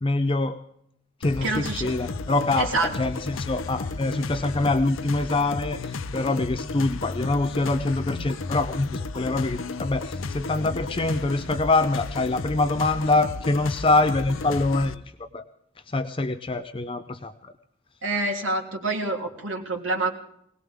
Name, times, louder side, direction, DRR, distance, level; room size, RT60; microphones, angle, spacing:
voice 1, 0.0-0.6 1.2-15.4 15.9-17.5, left 2 dB, 25° left, 9 dB, 0.6 m, -25 dB
sound 1, 1.2-15.0, left 3 dB, 80° left, 0.7 m, -33 dB
voice 2, 1.4-1.9 2.6-2.9 18.0-20.1, right 2 dB, 80° right, 0 dB, 3.2 m, -27 dB
20.5 x 19.0 x 3.6 m, 0.72 s
head